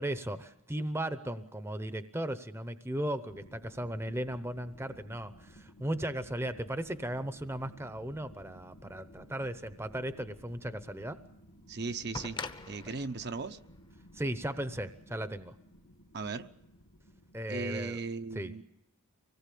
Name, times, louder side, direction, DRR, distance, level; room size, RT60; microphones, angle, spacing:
voice 1, 0.0-11.2 14.1-15.6 17.3-18.0 18.3-18.6, right 1 dB, 10° right, 11 dB, 0.8 m, -36 dB
sound 1, 3.3-17.7, equal, 75° left, 1.6 m, -56 dB
voice 2, 11.7-12.4 12.7-13.6 16.1-16.5 17.5-18.6, right 4 dB, 50° right, 8 dB, 0.8 m, -37 dB
sound 2, 12.1-15.0 16.2-16.3, left 3 dB, 20° left, 0.8 m, -44 dB
25.0 x 18.5 x 8.4 m, 0.89 s
head